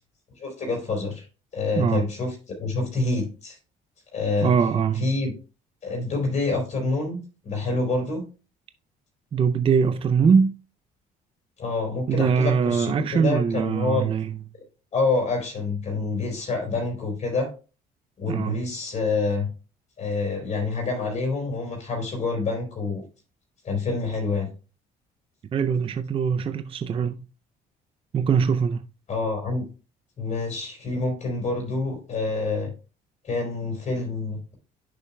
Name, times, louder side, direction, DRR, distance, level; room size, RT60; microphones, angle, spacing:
voice 1, 0.4-1.2 1.5-3.6 4.1-4.5 4.9-5.3 5.8-8.2 11.6-14.1 14.9-17.5 18.2-19.5 20.0-23.0 23.6-24.5 29.1-29.6 30.2-32.7 33.2-34.5, left 3 dB, 45° left, 4.3 m, -27 dB
voice 2, 4.4-5.1 9.3-10.6 12.1-14.4 18.3-18.6 25.5-27.3 28.1-28.9, right 6 dB, 30° right, 0.5 m, -22 dB
10.0 x 7.0 x 2.2 m
cardioid pair, 110°, 17 cm